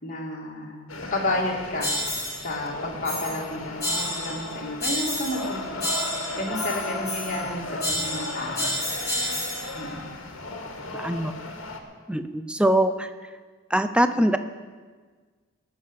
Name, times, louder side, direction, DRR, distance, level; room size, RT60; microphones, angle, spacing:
voice 1, 0.0-1.9 2.4-8.7 9.7-10.1, left 1 dB, 35° left, -1 dB, 2.6 m, -31 dB
sound 1, 0.9-11.8, left 2 dB, 65° left, 1.8 m, -35 dB
sound 2, 1.8-2.4 3.0-3.4 3.8-4.4 4.8-5.5 5.8-7.5 7.8-9.7, left 1 dB, 15° left, 6.0 m, -30 dB
voice 2, 10.9-11.4 12.1-13.1 13.7-14.4, right 1 dB, 5° right, 10 dB, 0.5 m, -22 dB
19.5 x 6.7 x 8.3 m, 1.5 s
head